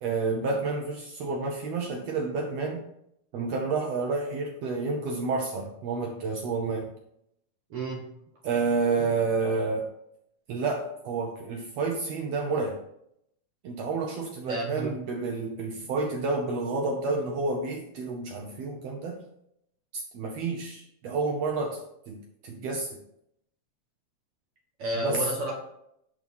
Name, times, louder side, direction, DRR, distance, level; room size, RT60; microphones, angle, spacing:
voice 1, 0.0-2.8 3.3-6.9 8.4-9.9 10.5-12.8 13.6-19.2 19.9-21.8 22.1-23.0 25.0-25.3, right 3 dB, 80° right, 2 dB, 1.5 m, -30 dB
voice 2, 7.7-8.1 14.5-14.9 24.8-25.5, right 1 dB, 55° right, -2 dB, 1.7 m, -31 dB
11.0 x 3.7 x 5.4 m, 0.77 s
omnidirectional pair, 3.9 m